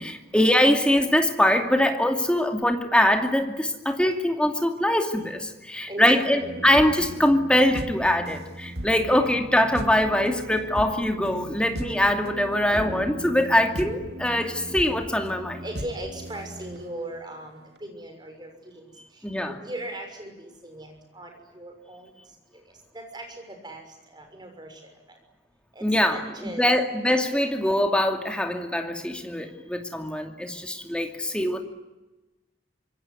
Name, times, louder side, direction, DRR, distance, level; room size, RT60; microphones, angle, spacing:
voice 1, 0.0-15.6 19.2-19.6 25.8-31.6, left 1 dB, 5° left, 5 dB, 2.5 m, -23 dB
voice 2, 5.9-6.6 15.6-22.1 22.5-22.6 22.9-24.9 25.7-26.7 27.0-27.1, right 1 dB, 25° right, 4 dB, 6.3 m, -39 dB
sound 1, 6.4-17.1 17.8-17.9, equal, 60° right, 2.5 m, -37 dB
26.0 x 22.5 x 9.7 m, 1.0 s
head